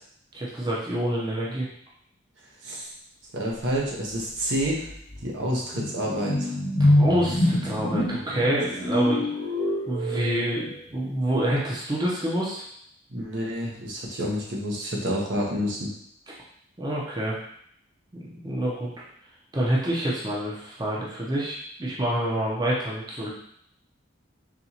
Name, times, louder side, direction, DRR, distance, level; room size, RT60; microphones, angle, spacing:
voice 1, 0.3-1.7 7.0-9.2 9.9-12.6 16.8-17.4 18.3-18.9 19.5-23.3, right 1 dB, 20° right, -6 dB, 0.7 m, -27 dB
voice 2, 3.3-4.9 5.2-6.6 13.1-15.9, equal, 70° right, -3 dB, 0.9 m, -28 dB
sound 1, 4.1-4.2 4.6-10.7, left 1 dB, 60° left, 1.1 m, -25 dB
4.2 x 3.0 x 2.8 m, 0.68 s
head